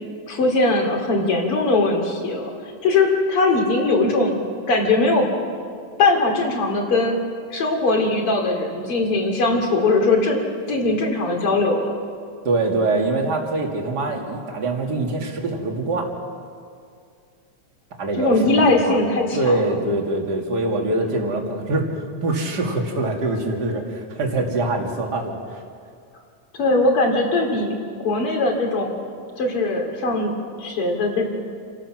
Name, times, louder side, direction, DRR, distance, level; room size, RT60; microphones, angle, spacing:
voice 1, 0.3-2.5 2.8-5.3 6.0-7.2 7.5-10.4 10.7-11.9 18.2-19.7 26.6-27.8 28.0-28.9 29.4-30.3 30.6-31.3, left 2 dB, 50° left, 2 dB, 3.5 m, -20 dB
voice 2, 12.4-16.1 18.0-19.0 19.3-25.6, right 2 dB, 35° right, 1 dB, 2.6 m, -24 dB
29.5 x 15.0 x 6.1 m, 2.2 s
omnidirectional pair, 3.4 m